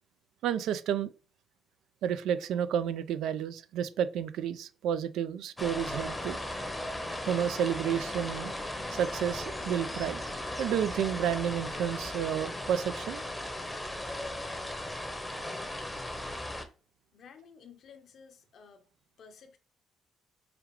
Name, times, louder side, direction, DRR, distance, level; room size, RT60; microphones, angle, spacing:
voice 1, 0.4-1.1 2.0-6.4 7.3-8.5 8.9-10.2 10.6-13.2, right 9 dB, 85° right, 0.3 m, -31 dB
sound 1, 5.6-16.6, left 1 dB, 10° left, 0.7 m, -37 dB
voice 2, 17.1-18.8 19.2-19.6, left 6 dB, 65° left, 0.7 m, -53 dB
4.9 x 2.4 x 3.1 m
cardioid pair, 90°, 0 cm